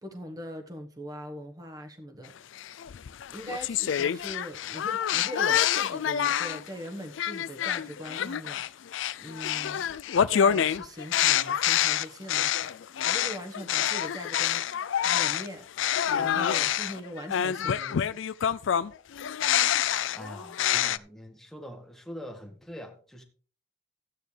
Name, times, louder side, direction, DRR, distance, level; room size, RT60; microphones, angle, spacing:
voice 1, 0.0-2.3 3.3-8.6 9.2-9.9 10.3-12.7 13.0-14.6 15.0-15.7 16.1-18.2, equal, 20° right, 1.3 m, -41 dB
sound 1, 2.6-6.7 7.2-15.5 15.8-21.0, left 9 dB, 75° left, 0.4 m, -27 dB
voice 2, 20.1-23.2, equal, ahead, 1.4 m, -43 dB
13.5 x 8.9 x 3.3 m
head